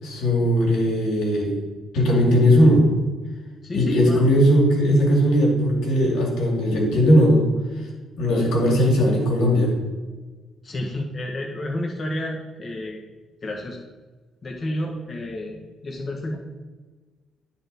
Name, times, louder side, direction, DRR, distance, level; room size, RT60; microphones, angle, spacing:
voice 1, 0.0-1.5 1.9-2.8 3.7-7.4 8.2-9.7, equal, 85° left, -1 dB, 2.3 m, -18 dB
voice 2, 3.6-4.2 10.6-13.0 13.4-13.8 14.4-16.4, left 1 dB, 40° left, 0 dB, 1.1 m, -30 dB
12.0 x 4.2 x 4.0 m, 1.3 s
cardioid pair, 90°, 0 cm